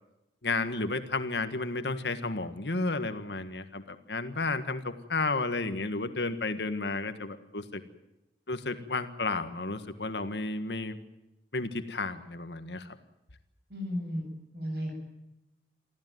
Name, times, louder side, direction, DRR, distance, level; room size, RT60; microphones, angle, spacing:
voice 1, 0.4-7.8 8.5-11.0 11.5-13.0, left 3 dB, 75° left, 9 dB, 1.7 m, -32 dB
voice 2, 13.7-14.3 14.5-15.0, equal, 60° right, 3 dB, 7.5 m, -34 dB
25.0 x 15.5 x 9.4 m, 0.93 s
head